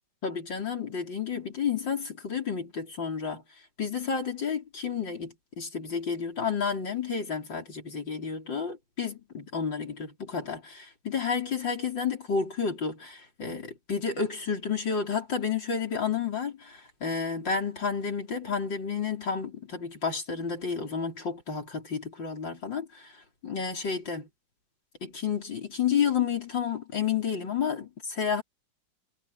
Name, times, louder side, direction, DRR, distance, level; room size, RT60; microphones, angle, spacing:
voice 1, 0.2-3.4 3.8-23.1 23.4-24.3 25.0-28.4, left 6 dB, 65° left, 5.3 m, -31 dB
omnidirectional pair, 2.1 m